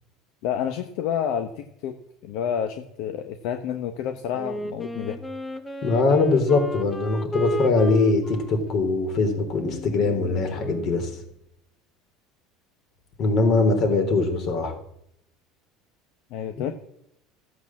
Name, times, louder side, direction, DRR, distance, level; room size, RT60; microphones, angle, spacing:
voice 1, 0.4-2.0 2.2-5.2 16.3-16.7, left 9 dB, 65° left, 8 dB, 1.0 m, -29 dB
Wind instrument woodwind instrument, 4.3-11.0, equal, 10° left, 0.9 m, -34 dB
voice 2, 5.8-11.1 13.2-14.7 16.6-16.7, left 3 dB, 45° left, 5 dB, 3.5 m, -22 dB
14.0 x 7.9 x 7.4 m, 0.74 s
cardioid pair, 140°, 0 cm